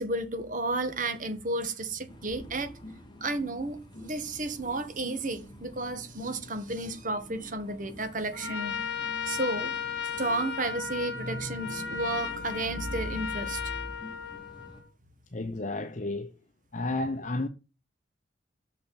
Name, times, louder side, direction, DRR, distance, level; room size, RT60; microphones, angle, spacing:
voice 1, 0.0-2.7 3.2-8.9 9.3-9.7 10.2-13.6, right 2 dB, 45° right, 1.4 m, -32 dB
sound 1, 2.1-14.8, left 1 dB, 25° left, 1.4 m, -48 dB
Trumpet, 8.3-14.9, left 7 dB, 65° left, 1.5 m, -35 dB
voice 2, 15.3-16.3 16.7-17.5, left 2 dB, 40° left, 0.7 m, -31 dB
6.5 x 5.9 x 6.9 m
head